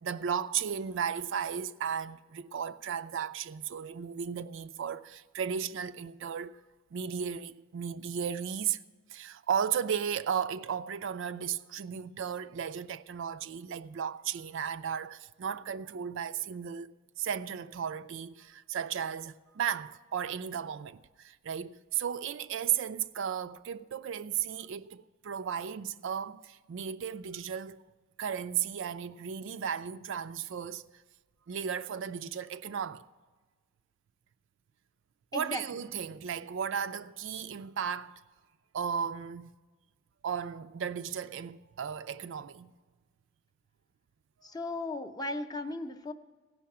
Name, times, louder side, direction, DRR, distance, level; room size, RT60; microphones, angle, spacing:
voice 1, 0.0-6.6 6.9-8.8 9.1-27.8 28.2-30.8 31.5-33.1 35.3-38.2 38.7-39.5 40.2-42.7, right 7 dB, 55° right, 0.4 m, -35 dB
voice 2, 35.3-35.6 44.4-46.1, left 2 dB, 20° left, 0.6 m, -36 dB
16.5 x 5.7 x 8.4 m
head